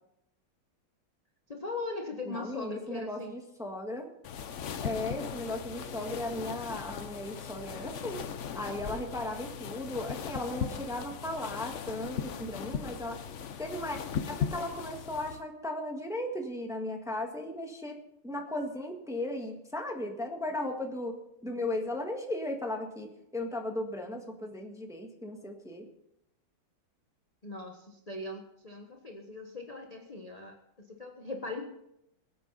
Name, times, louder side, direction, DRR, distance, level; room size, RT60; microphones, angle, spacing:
voice 1, 1.5-3.3 27.4-31.7, left 3 dB, 25° left, 1 dB, 1.0 m, -40 dB
voice 2, 2.2-4.1 4.8-8.2 8.5-13.2 13.6-14.0 14.3-18.0 18.2-25.9, left 1 dB, ahead, 2 dB, 1.4 m, -36 dB
sound 1, 4.2-15.4, left 7 dB, 90° left, 0.6 m, -38 dB
22.5 x 8.6 x 4.1 m, 0.82 s
omnidirectional pair, 2.4 m